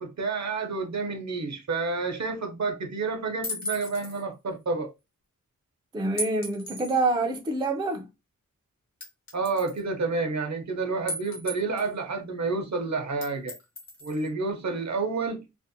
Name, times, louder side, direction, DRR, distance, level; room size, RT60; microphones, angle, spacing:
voice 1, 0.0-4.9 9.3-13.5 14.0-15.5, right 4 dB, 60° right, 0.7 m, -29 dB
sound 1, 3.4-4.2 6.2-7.0 7.6-7.7 9.0-9.8 11.1-11.9 13.2-14.3, equal, 60° left, 1.0 m, -36 dB
voice 2, 5.9-8.1, right 2 dB, 15° right, 0.4 m, -26 dB
2.5 x 2.0 x 2.6 m
wide cardioid pair, 95°, 31 cm